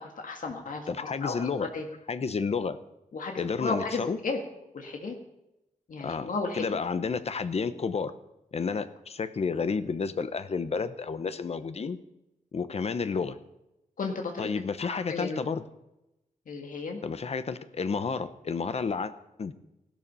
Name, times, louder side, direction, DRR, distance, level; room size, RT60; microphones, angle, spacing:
voice 1, 0.0-1.9 3.1-4.4 4.7-5.2 5.9-6.6 14.0-14.5 14.8-15.4 16.5-17.0, left 4 dB, 75° left, 2 dB, 1.9 m, -34 dB
voice 2, 0.9-1.7 2.1-2.8 3.4-4.2 6.0-6.3 6.5-8.1 8.5-12.0 12.5-13.4 14.4-15.6 17.0-19.1 19.4-19.5, left 5 dB, 50° left, 12 dB, 0.9 m, -31 dB
17.0 x 12.5 x 5.6 m, 0.90 s
wide cardioid pair, 170°, 14 cm